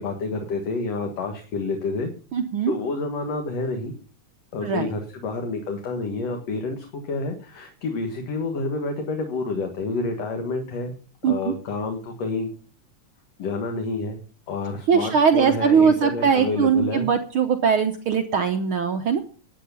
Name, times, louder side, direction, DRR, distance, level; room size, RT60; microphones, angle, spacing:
voice 1, 0.0-2.1 2.7-3.9 4.5-10.9 11.2-12.5 13.4-14.2 14.5-17.1, left 3 dB, 60° left, 4 dB, 2.7 m, -29 dB
voice 2, 2.3-2.7 4.6-4.9 11.2-11.5 14.9-19.2, right 6 dB, 65° right, 6 dB, 1.4 m, -20 dB
12.0 x 8.7 x 6.9 m, 0.41 s
omnidirectional pair, 3.3 m